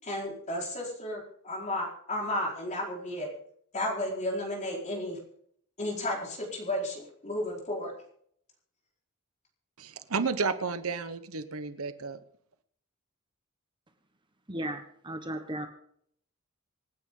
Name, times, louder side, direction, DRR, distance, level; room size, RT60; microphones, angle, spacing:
voice 1, 0.0-3.3 3.7-5.2 5.8-7.9, left 1 dB, 35° left, 4.8 m, -33 dB
voice 2, 9.8-12.2, right 4 dB, 80° right, 1.0 m, -32 dB
voice 3, 14.5-15.7, right 1 dB, 20° right, 1.3 m, -35 dB
26.5 x 9.3 x 3.9 m
head